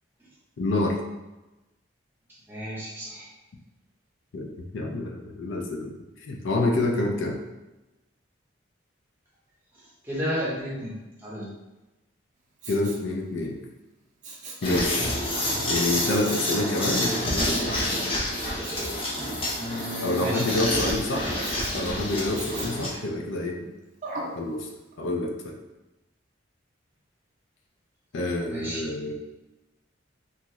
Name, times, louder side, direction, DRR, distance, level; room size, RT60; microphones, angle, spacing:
voice 1, 0.6-1.0 4.3-5.9 6.2-7.4 12.7-13.6 14.6-15.1 15.7-17.8 20.0-21.4 21.7-23.7 24.4-24.7 25.0-25.6 28.1-29.1, left 2 dB, 75° left, 1 dB, 0.4 m, -27 dB
voice 2, 2.5-3.3 10.0-11.5 14.9-15.1 19.6-20.7 28.5-28.8, equal, 10° right, -7 dB, 0.7 m, -33 dB
Respiratory sounds, 12.6-13.1 14.2-14.7 16.1-16.5 17.5-18.0 18.6-19.0 21.4-21.8 22.4-22.9 24.0-24.4 24.9-25.0, right 3 dB, 40° right, 0.4 m, -38 dB
sound 1, 14.6-22.9, left 1 dB, 30° left, 0.5 m, -28 dB
2.8 x 2.4 x 3.0 m, 1.0 s
head